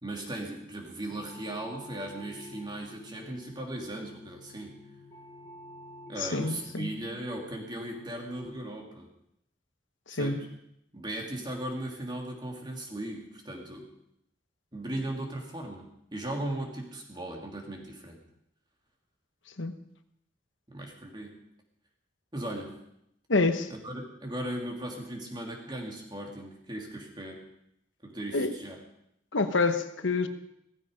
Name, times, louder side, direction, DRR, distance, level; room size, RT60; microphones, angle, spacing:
voice 1, 0.0-4.7 6.1-9.1 10.1-10.5 10.9-13.9 14.7-18.2 20.7-21.3 22.3-22.7 23.7-27.4 28.0-28.8, right 1 dB, 25° right, 1 dB, 2.9 m, -37 dB
sound 1, 1.1-8.5, left 1 dB, 15° left, 1.9 m, -50 dB
voice 2, 6.2-6.9 10.1-10.4 19.6-19.7 23.3-23.7 28.3-28.5 29.3-30.3, left 3 dB, 80° left, 8 dB, 1.2 m, -27 dB
17.0 x 14.5 x 5.2 m, 0.78 s
head